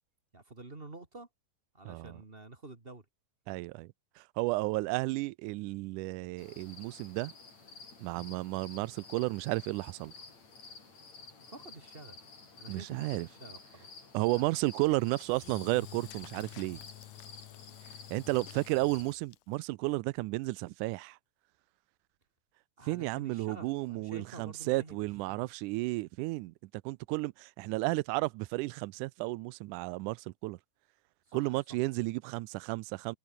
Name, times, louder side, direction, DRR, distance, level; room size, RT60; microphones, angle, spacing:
voice 1, 0.3-1.3 1.7-3.1 8.1-8.4 11.5-12.2 12.6-14.0 14.3-14.5 22.8-25.0 25.3-25.5 31.3-31.5, right 2 dB, 20° right, 1.9 m, -49 dB
voice 2, 1.9-2.2 3.5-7.3 8.0-10.1 12.7-13.3 14.1-16.8 18.1-21.2 22.9-26.5 26.9-30.6 31.3-33.2, right 21 dB, 80° right, 2.0 m, -33 dB
sound 1, 6.4-19.2, left 4 dB, 55° left, 6.9 m, -52 dB
Engine / Drill, 15.1-19.7, left 16 dB, 80° left, 1.5 m, -50 dB
omnidirectional pair, 3.8 m